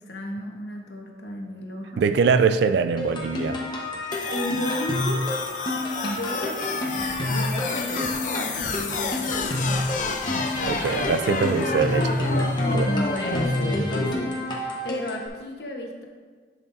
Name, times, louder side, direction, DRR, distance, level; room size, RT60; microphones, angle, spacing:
voice 1, 0.1-2.1 4.3-5.4 6.0-6.6 7.3-9.7 10.7-11.1 12.8-14.4 14.8-16.0, equal, 65° left, 1 dB, 1.2 m, -34 dB
voice 2, 2.0-3.6 10.6-12.9, right 5 dB, 70° right, 11 dB, 0.3 m, -23 dB
sound 1, 3.0-15.3, left 1 dB, 25° left, 1.1 m, -29 dB
sound 2, 4.1-14.1, left 3 dB, 45° left, 0.6 m, -29 dB
10.5 x 5.8 x 2.7 m, 1.5 s
head